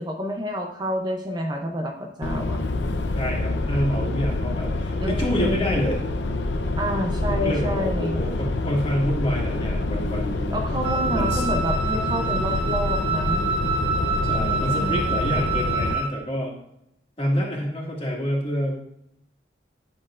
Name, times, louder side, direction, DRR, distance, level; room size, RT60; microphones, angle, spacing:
voice 1, 0.0-2.6 5.0-5.8 6.8-8.2 10.5-13.5 14.4-15.2, equal, 25° right, 3 dB, 0.6 m, -29 dB
sound 1, 2.2-15.9, left 2 dB, 75° left, 0.6 m, -26 dB
voice 2, 3.2-6.0 7.3-10.5 11.1-11.4 14.2-16.5 17.2-18.8, equal, 30° left, -2 dB, 1.9 m, -27 dB
Wind instrument woodwind instrument, 10.8-16.2, right 4 dB, 85° right, 1.3 m, -27 dB
10.5 x 6.4 x 2.5 m, 0.77 s
head